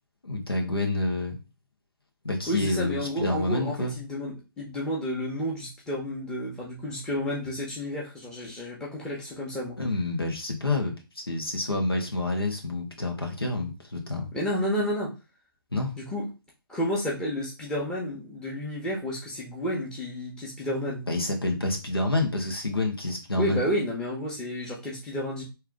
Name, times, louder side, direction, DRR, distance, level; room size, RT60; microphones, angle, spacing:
voice 1, 0.2-1.4 2.2-3.9 9.8-14.3 15.7-16.0 21.0-23.6, left 2 dB, 85° left, 1 dB, 1.5 m, -28 dB
voice 2, 2.5-9.8 14.3-15.1 16.0-16.3 16.7-21.1 23.4-25.4, equal, 5° left, -4 dB, 1.2 m, -31 dB
3.6 x 3.2 x 3.6 m, 0.29 s
figure-of-eight pair, 140°, 12 cm